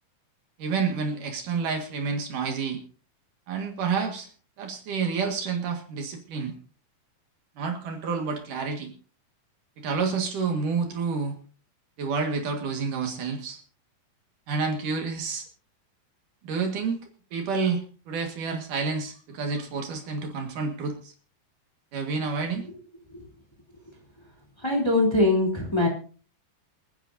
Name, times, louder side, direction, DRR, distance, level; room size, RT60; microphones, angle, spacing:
voice 1, 0.6-2.8 3.5-4.3 4.6-6.5 7.6-8.9 9.8-11.4 12.0-13.6 14.5-15.5 16.4-17.0 17.3-21.1 21.9-22.7, right 5 dB, 65° right, 3 dB, 3.3 m, -29 dB
voice 2, 24.6-25.9, left 2 dB, 10° left, 0 dB, 3.0 m, -22 dB
27.5 x 9.9 x 2.7 m, 0.38 s
omnidirectional pair, 4.0 m